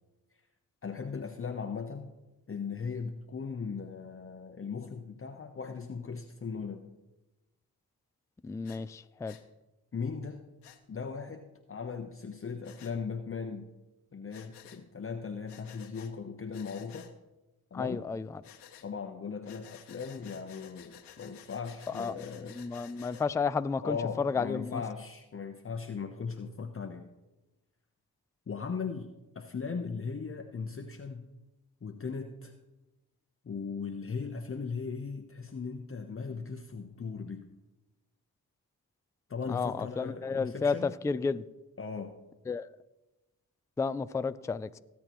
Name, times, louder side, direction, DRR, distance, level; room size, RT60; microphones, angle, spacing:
voice 1, 0.8-2.1 2.5-6.9 9.9-10.4 10.9-13.7 14.1-17.1 17.7-18.0 18.8-22.8 23.8-27.1 28.5-29.1 29.3-31.3 31.8-32.5 33.4-37.5 39.3-40.9 41.8-42.1, left 5 dB, 35° left, 0.8 m, -38 dB
voice 2, 8.4-9.4 17.7-18.4 21.9-24.8 39.5-41.4 42.5-42.7 43.8-44.7, left 5 dB, 10° left, 0.3 m, -32 dB
Breathing, 8.6-8.8 9.3-9.4 10.6-10.8 12.6-12.9 14.3-14.8 15.5-16.1 16.5-17.1 18.4-18.9 19.5-23.3, left 9 dB, 85° left, 1.0 m, -53 dB
18.0 x 8.4 x 3.0 m
supercardioid pair, 55°, 40 cm